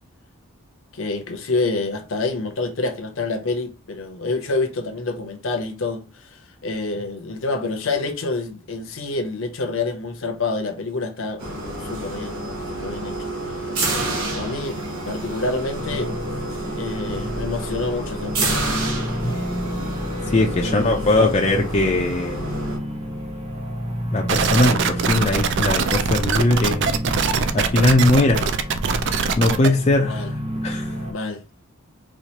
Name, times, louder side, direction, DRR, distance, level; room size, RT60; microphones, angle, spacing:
voice 1, 0.9-12.4 12.7-13.2 14.3-14.8 15.1-16.1 16.8-18.6 20.6-21.3 30.0-30.3 31.1-31.4, left 3 dB, 60° left, 0.7 m, -27 dB
sound 1, 11.4-22.8, right 1 dB, 75° right, 1.2 m, -29 dB
sound 2, 15.7-31.1, equal, 25° right, 0.8 m, -31 dB
voice 2, 20.3-22.5 24.1-27.0 27.5-28.5 29.4-30.3 30.6-30.9, left 2 dB, 30° left, 0.4 m, -20 dB
sound 3, 24.3-29.7, right 5 dB, 50° right, 0.3 m, -22 dB
4.4 x 2.4 x 2.9 m
head